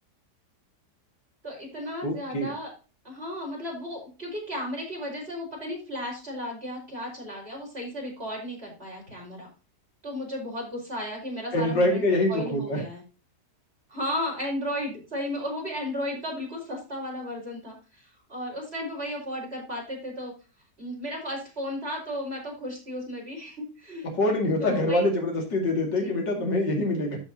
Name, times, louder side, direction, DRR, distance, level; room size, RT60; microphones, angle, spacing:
voice 1, 1.4-2.7 3.0-9.5 10.0-12.0 12.3-13.0 13.9-20.3 20.8-24.0 24.6-25.0 26.0-26.1, left 1 dB, 35° right, -3 dB, 5.5 m, -34 dB
voice 2, 2.0-2.5 11.5-12.8 24.2-27.2, left 1 dB, 85° left, 1 dB, 3.1 m, -25 dB
14.0 x 5.6 x 2.9 m, 0.33 s
omnidirectional pair, 1.9 m